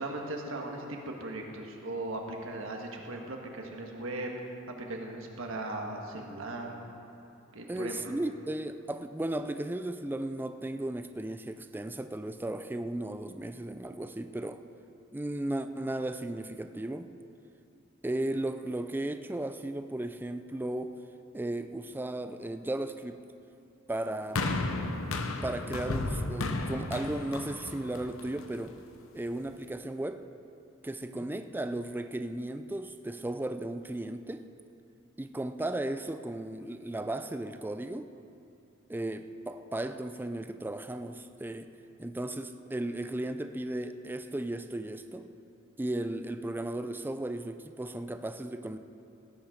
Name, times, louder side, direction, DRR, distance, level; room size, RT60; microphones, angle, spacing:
voice 1, 0.0-4.3 4.7-6.7 7.5-8.1 30.9-31.3, right 2 dB, 70° right, 1 dB, 1.7 m, -38 dB
voice 2, 7.7-14.6 15.1-17.1 18.0-21.0 21.3-23.2 23.9-24.5 25.4-28.8 29.1-30.2 30.8-34.5 35.2-38.1 38.9-41.7 42.0-45.3 45.8-48.8, right 1 dB, 10° right, 9 dB, 0.4 m, -35 dB
sound 1, 24.4-28.7 29.5-29.6, left 2 dB, 70° left, 0.9 m, -33 dB
17.5 x 8.9 x 5.1 m, 2.6 s
head